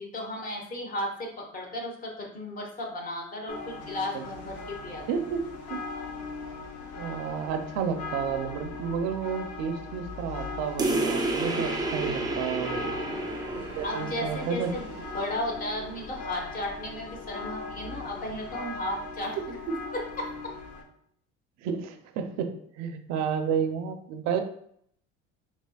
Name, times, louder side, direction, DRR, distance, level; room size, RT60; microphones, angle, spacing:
voice 1, 0.0-5.0 12.8-13.3 13.8-19.6 19.9-20.5, left 1 dB, 30° left, 1 dB, 1.0 m, -35 dB
sound 1, 3.5-20.8, left 3 dB, 55° left, 0.8 m, -39 dB
voice 2, 5.1-5.4 5.7-5.8 7.0-12.8 13.6-15.0 19.4-19.5 21.6-24.4, right 7 dB, 65° right, 7 dB, 0.6 m, -31 dB
sound 2, 10.8-15.8, right 2 dB, 15° right, 0.5 m, -31 dB
4.2 x 3.0 x 2.2 m, 0.68 s
cardioid pair, 110°, 29 cm